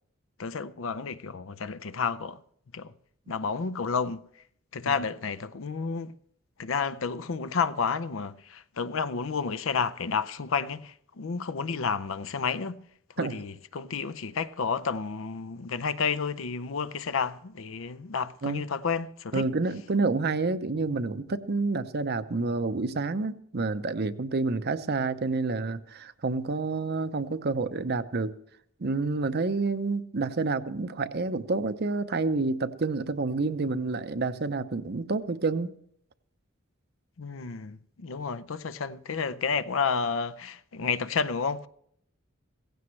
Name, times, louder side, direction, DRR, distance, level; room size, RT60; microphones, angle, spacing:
voice 1, 0.4-2.4 2.7-2.9 3.3-4.2 4.7-6.1 6.6-12.8 13.2-19.5 37.2-41.7, left 5 dB, 70° left, 0.6 m, -31 dB
voice 2, 19.3-28.3 28.8-35.7, right 3 dB, 50° right, 0.7 m, -28 dB
16.5 x 15.5 x 3.2 m
head